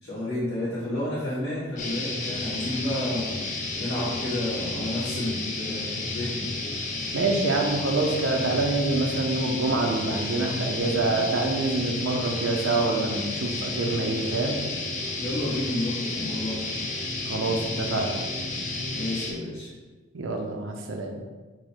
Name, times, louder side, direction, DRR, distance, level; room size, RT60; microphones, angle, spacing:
voice 1, 0.0-3.3 3.8-6.5 15.2-16.7 18.9-19.7, left 1 dB, 65° left, -12 dB, 1.3 m, -30 dB
sound 1, 1.8-19.3, left 2 dB, 40° left, 0.5 m, -32 dB
voice 2, 7.1-14.6 17.3-18.2 20.1-21.2, right 2 dB, 90° right, 1 dB, 0.5 m, -26 dB
4.6 x 2.1 x 4.4 m, 1.3 s
head